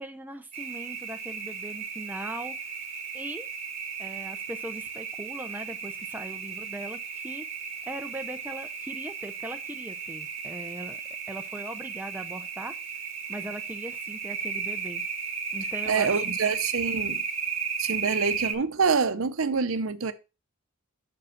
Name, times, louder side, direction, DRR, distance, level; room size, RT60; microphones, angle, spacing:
voice 1, 0.0-2.6 3.1-3.5 4.0-7.4 7.8-11.0 11.3-12.8 13.3-15.0 15.5-16.3, right 1 dB, 10° right, 0.6 m, -39 dB
sound 1, 0.5-18.5, right 6 dB, 30° right, 1.4 m, -34 dB
voice 2, 15.9-17.2 17.8-20.1, right 5 dB, 70° right, 0.7 m, -26 dB
6.3 x 5.1 x 5.7 m
head